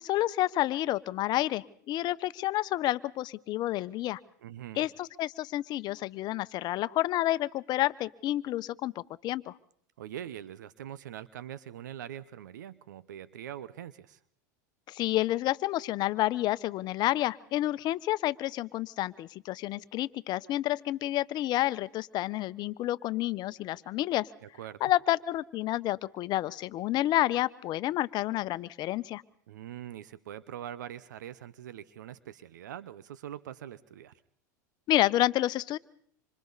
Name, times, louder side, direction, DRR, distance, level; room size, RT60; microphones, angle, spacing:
voice 1, 0.0-4.2 4.8-8.9 9.2-9.5 14.9-24.3 24.8-29.2 34.9-35.8, left 15 dB, 45° left, 16 dB, 0.9 m, -29 dB
voice 2, 4.4-4.9 10.0-14.2 24.4-24.8 29.5-34.1, right 11 dB, 80° right, 16 dB, 0.9 m, -43 dB
26.5 x 26.0 x 4.1 m, 0.65 s
hypercardioid pair, 95°, 10 cm